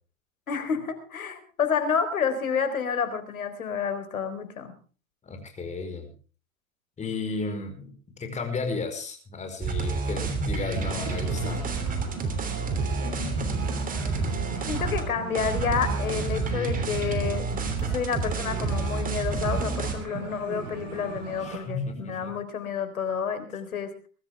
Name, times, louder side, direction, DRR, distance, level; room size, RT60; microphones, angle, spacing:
voice 1, 0.5-4.7 13.0-13.8 14.7-17.5 17.8-23.9, left 6 dB, 85° left, 10 dB, 4.0 m, -29 dB
voice 2, 5.2-6.1 7.0-11.6 21.4-22.3, left 4 dB, 15° left, 5 dB, 4.6 m, -34 dB
sound 1, 9.6-15.0 15.3-19.9, right 4 dB, 20° right, 3.1 m, -29 dB
sound 2, 10.7-21.6, right 5 dB, 40° right, 6.9 m, -38 dB
21.5 x 13.5 x 3.5 m, 0.38 s
hypercardioid pair, 120°, 41 cm